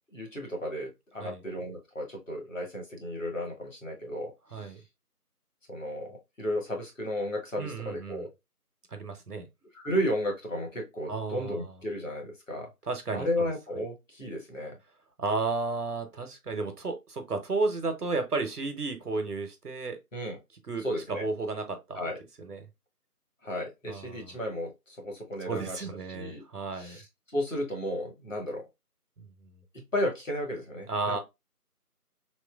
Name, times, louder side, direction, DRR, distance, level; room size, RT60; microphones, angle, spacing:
voice 1, 0.1-4.7 5.7-8.3 9.7-12.7 13.1-14.8 20.1-20.4 20.8-21.3 21.9-22.2 23.4-26.4 26.7-27.1 27.3-28.6 29.7-31.2, equal, 55° left, 1.4 m, -34 dB
voice 2, 7.6-8.3 8.9-9.5 11.1-11.7 12.9-13.5 15.2-20.0 20.7-22.0 22.4-22.6 23.9-24.4 25.5-27.0 29.2-29.5 30.9-31.2, right 3 dB, 75° right, 1.0 m, -33 dB
3.7 x 3.0 x 2.3 m
figure-of-eight pair, 180°, 47 cm